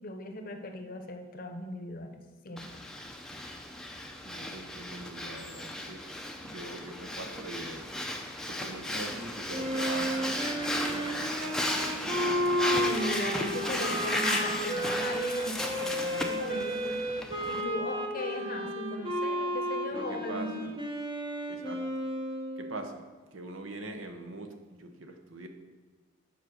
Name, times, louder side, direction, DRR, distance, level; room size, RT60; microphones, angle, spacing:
voice 1, 0.0-2.2 2.4-2.8 12.7-20.6, left 1 dB, 40° left, 5 dB, 0.8 m, -38 dB
Breathing, 2.6-17.6, left 1 dB, 5° left, 0.5 m, -35 dB
voice 2, 4.2-6.0 6.4-7.8 8.5-12.7 13.5-13.8 19.9-20.8 21.5-21.8 22.6-23.0 23.3-25.5, right 2 dB, 70° right, 5 dB, 0.9 m, -43 dB
Wind instrument woodwind instrument, 9.5-22.9, equal, 25° right, 0.9 m, -33 dB
7.3 x 5.1 x 6.4 m, 1.4 s
head